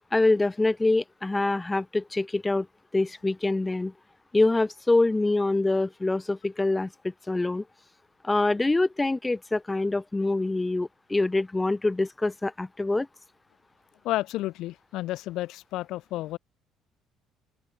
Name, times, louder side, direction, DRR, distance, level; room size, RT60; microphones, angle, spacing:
voice 1, 0.1-2.7 2.9-3.9 4.3-7.6 8.2-13.1, left 2 dB, 15° left, 1.6 m, -25 dB
voice 2, 14.0-16.4, left 16 dB, 75° left, 1.4 m, -31 dB
open air
cardioid pair, 95°, 0 cm